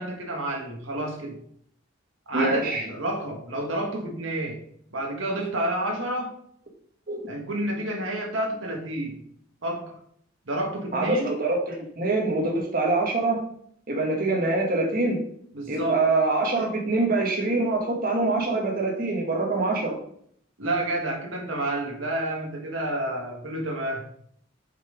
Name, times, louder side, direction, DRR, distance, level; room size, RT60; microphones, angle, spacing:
voice 1, 0.0-1.4 2.3-4.6 4.9-6.3 7.3-9.2 9.6-10.0 10.5-11.3 15.5-16.1 20.6-24.1, right 1 dB, 85° right, 1 dB, 1.6 m, -29 dB
voice 2, 2.3-2.8 7.1-7.2 10.9-13.4 13.9-15.2 15.7-20.0, right 2 dB, 45° right, 0 dB, 1.6 m, -24 dB
6.0 x 5.8 x 5.0 m, 0.66 s
head